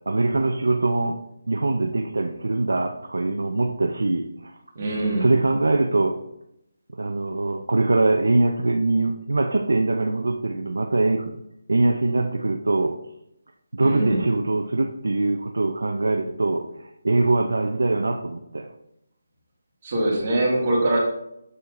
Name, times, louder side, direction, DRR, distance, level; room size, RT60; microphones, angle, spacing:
voice 1, 0.1-1.2 1.5-4.5 5.2-6.2 6.9-11.4 11.7-13.0 13.7-18.7, right 2 dB, 85° right, 4 dB, 0.5 m, -23 dB
voice 2, 4.7-5.3 13.8-14.3 19.8-21.0, right 1 dB, 40° right, -3 dB, 1.8 m, -23 dB
6.8 x 6.4 x 2.5 m, 0.82 s
figure-of-eight pair, 165°, 0 cm